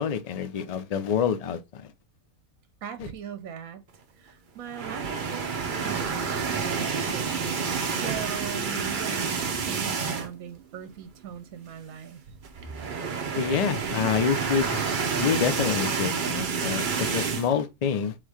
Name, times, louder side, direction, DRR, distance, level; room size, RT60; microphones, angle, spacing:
voice 1, 0.0-1.8 3.0-3.1 13.4-14.8 15.2-18.2, left 7 dB, 90° left, 0.3 m, -27 dB
voice 2, 2.8-3.8 4.2-12.4, right 9 dB, 75° right, 1.1 m, -40 dB
sound 1, 4.7-10.5 10.9-11.0 11.3-11.4 12.4-17.5, right 5 dB, 45° right, 0.7 m, -29 dB
3.8 x 2.6 x 4.7 m
omnidirectional pair, 1.5 m